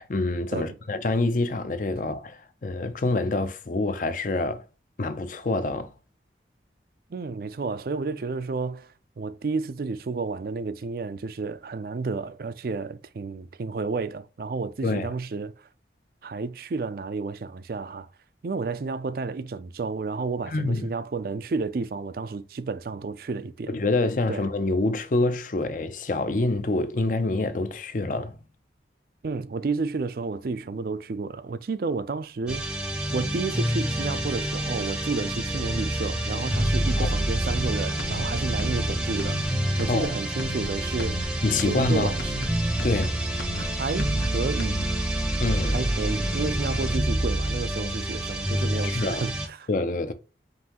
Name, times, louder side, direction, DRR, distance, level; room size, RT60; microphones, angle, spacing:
voice 1, 0.0-4.7 5.0-5.9 14.8-15.1 20.5-20.9 23.7-28.4 37.0-37.1 39.9-40.1 41.4-42.1 42.8-43.2 45.4-45.8 48.8-49.2 49.7-50.1, left 2 dB, 45° left, 0.5 m, -26 dB
voice 2, 7.1-15.6 16.2-18.1 18.4-23.7 24.3-24.4 29.2-32.8 33.1-41.3 41.6-42.3 43.6-44.8 45.7-49.7, right 4 dB, 55° right, 0.4 m, -31 dB
sound 1, 32.5-49.5, right 1 dB, 5° right, 0.7 m, -27 dB
sound 2, 37.6-37.7 38.0-38.3 38.6-38.9 39.2-39.5 39.8-40.1 40.4-40.7 41.0-41.3 41.6-41.9 42.2-42.5 42.8-43.1 43.4-43.7 44.0-44.3 44.6-44.8, left 2 dB, 65° left, 0.9 m, -35 dB
5.4 x 2.7 x 2.9 m
head